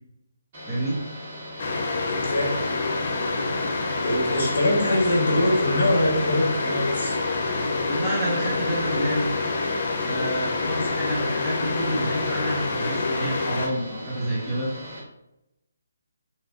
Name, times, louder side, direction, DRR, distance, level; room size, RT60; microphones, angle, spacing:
sound 1, 0.5-15.0, equal, 35° right, 1.5 m, -39 dB
voice 1, 0.7-1.0 7.9-9.3 10.0-14.7, right 1 dB, 10° right, -10 dB, 0.9 m, -28 dB
sound 2, 1.6-13.7, left 3 dB, 45° left, 0.4 m, -27 dB
voice 2, 2.0-2.5 4.0-7.1 10.8-10.9, left 1 dB, 60° left, -3 dB, 1.1 m, -23 dB
3.2 x 2.4 x 2.4 m, 0.89 s
figure-of-eight pair, 145°, 0 cm